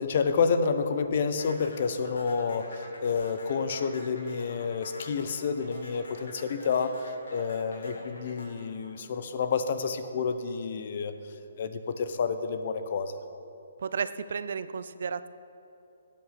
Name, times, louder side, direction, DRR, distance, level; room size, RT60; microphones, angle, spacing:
voice 1, 0.0-2.7 3.0-11.1 11.6-13.2, left 5 dB, 50° left, 9 dB, 0.8 m, -29 dB
sound 1, 1.4-9.7, left 1 dB, 75° left, 2.6 m, -47 dB
voice 2, 13.8-15.3, right 6 dB, 60° right, 14 dB, 0.5 m, -33 dB
13.0 x 8.7 x 5.8 m, 2.8 s
hypercardioid pair, 160°, 0 cm